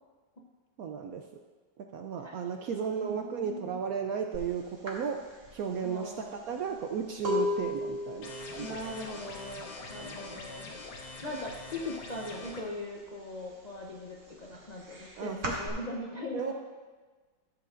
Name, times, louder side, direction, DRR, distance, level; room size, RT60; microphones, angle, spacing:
voice 1, 0.8-1.2 1.8-8.9 10.0-10.4 15.2-15.6 16.3-16.5, right 7 dB, 75° right, 4 dB, 0.8 m, -35 dB
voice 2, 2.2-3.8 5.8-6.6 8.6-10.7 11.2-16.5, left 1 dB, 50° left, -3 dB, 0.4 m, -40 dB
sound 1, 4.3-4.5 4.9-10.5 10.8-11.3 11.6-12.7 13.1-15.7, left 1 dB, 35° right, 1.5 m, -36 dB
sound 2, 8.2-12.6, left 3 dB, 90° left, 1.8 m, -44 dB
14.0 x 7.7 x 2.5 m, 1.3 s
omnidirectional pair, 2.0 m